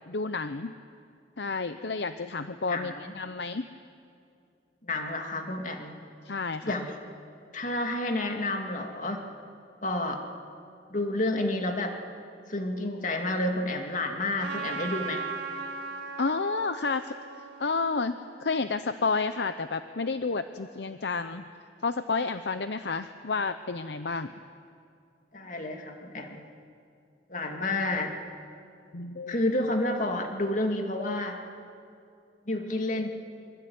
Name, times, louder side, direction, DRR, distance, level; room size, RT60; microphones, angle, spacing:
voice 1, 0.1-0.7 1.4-3.7 6.2-6.7 16.2-17.1 17.6-21.4 21.8-24.3 28.9-29.4, left 4 dB, 75° left, 10 dB, 0.8 m, -30 dB
voice 2, 2.7-3.1 4.8-6.0 6.6-6.9 7.5-9.2 9.8-10.2 10.9-12.0 12.5-15.3 25.3-26.4 27.3-28.1 29.3-31.4 32.5-33.1, left 1 dB, 45° left, 3 dB, 2.5 m, -30 dB
Trumpet, 14.4-19.1, right 4 dB, 90° right, 3.7 m, -38 dB
25.0 x 25.0 x 9.5 m, 2.5 s
head